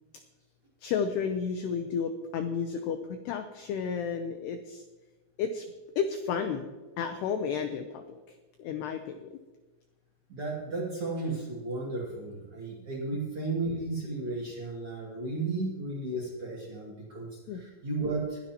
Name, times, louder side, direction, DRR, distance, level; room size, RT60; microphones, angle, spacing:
voice 1, 0.8-4.8 5.4-5.7 6.0-6.7 7.0-8.2 8.6-9.3 17.5-17.6, left 6 dB, 85° left, 7 dB, 2.3 m, -32 dB
voice 2, 10.3-18.4, right 2 dB, 40° right, -4 dB, 2.1 m, -34 dB
21.5 x 10.5 x 2.9 m, 1.2 s
omnidirectional pair, 5.7 m